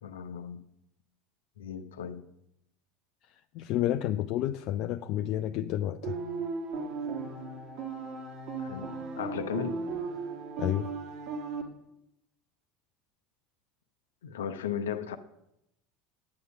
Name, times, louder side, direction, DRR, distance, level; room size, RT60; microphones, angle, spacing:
voice 1, 0.0-0.6 1.6-2.2 8.6-9.9 14.2-15.2, left 8 dB, 65° left, 0.8 m, -36 dB
voice 2, 3.5-6.2 10.6-10.9, left 12 dB, 50° left, 0.4 m, -30 dB
sound 1, 6.0-11.6, right 4 dB, 50° right, 2.0 m, -36 dB
9.6 x 9.4 x 6.2 m
figure-of-eight pair, 70°, 0 cm